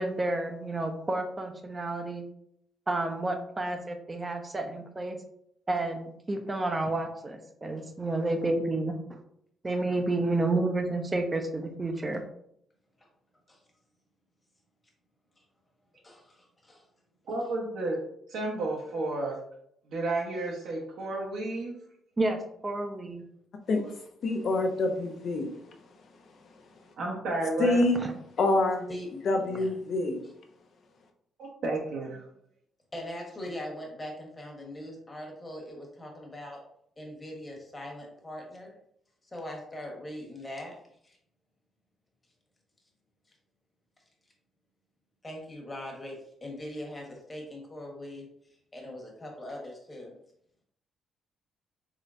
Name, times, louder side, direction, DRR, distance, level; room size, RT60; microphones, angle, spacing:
voice 1, 0.0-2.3 2.9-5.2 5.7-8.9 9.6-12.2 22.2-23.2, right 2 dB, 25° right, 6 dB, 0.6 m, -30 dB
voice 2, 16.0-16.9 28.9-29.1 29.4-29.7 32.9-36.6 37.0-38.7 39.3-41.2 45.2-48.3 48.7-50.1, left 1 dB, 20° left, 0 dB, 1.2 m, -41 dB
voice 3, 17.3-18.0 18.3-19.4 19.9-21.7 27.0-27.8 31.4-32.2, right 2 dB, 75° right, -2 dB, 0.9 m, -31 dB
voice 4, 24.2-25.5 27.6-28.0 28.4-28.9 29.1-30.2, left 2 dB, 60° left, 4 dB, 0.6 m, -26 dB
3.7 x 3.2 x 2.5 m, 0.71 s
cardioid pair, 90°, 0 cm